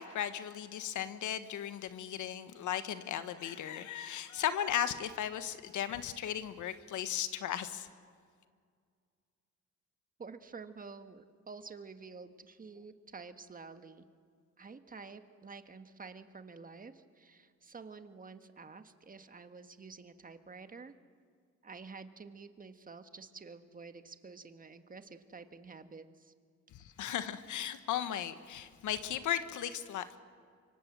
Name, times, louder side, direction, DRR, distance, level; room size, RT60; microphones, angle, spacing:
voice 1, 0.0-7.9 26.7-30.0, left 10 dB, 75° left, 11 dB, 1.4 m, -36 dB
voice 2, 10.2-14.0 14.6-20.9 21.6-26.3, right 4 dB, 30° right, 9 dB, 1.6 m, -50 dB
25.0 x 24.5 x 7.6 m, 2.1 s
cardioid pair, 90°, 30 cm